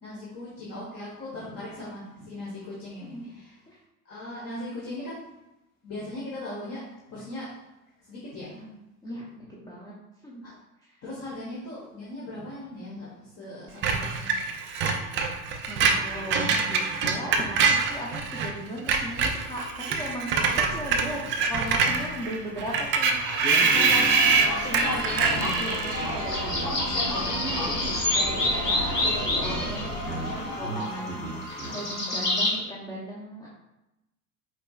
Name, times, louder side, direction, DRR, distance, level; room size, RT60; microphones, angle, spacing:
voice 1, 0.0-3.6 4.0-5.3 5.8-7.5 8.0-8.6 10.4-10.5 11.0-14.5 20.8-21.2 28.1-28.5, left 1 dB, 30° left, -6 dB, 1.3 m, -39 dB
voice 2, 9.0-9.9 10.2-10.4 10.8-11.0 15.7-33.5, equal, 10° left, -4 dB, 0.7 m, -38 dB
Screech, 13.8-18.5 18.8-26.2, right 5 dB, 25° right, 0.4 m, -25 dB
sound 1, 22.9-32.5, left 1 dB, 90° left, 1.1 m, -28 dB
sound 2, 23.4-32.4, right 2 dB, 55° left, 1.3 m, -44 dB
5.1 x 4.0 x 2.4 m, 0.93 s
figure-of-eight pair, 75°, 46 cm